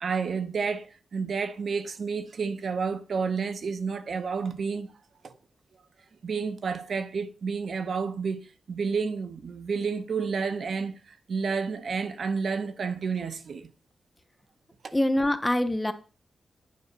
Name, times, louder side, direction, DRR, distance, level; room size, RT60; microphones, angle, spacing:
voice 1, 0.0-4.9 5.2-5.3 6.2-13.7 14.8-14.9, right 5 dB, 55° right, 0.7 m, -30 dB
voice 2, 14.9-15.9, left 1 dB, 10° left, 0.6 m, -24 dB
9.4 x 4.1 x 5.9 m
wide cardioid pair, 150°, 0 cm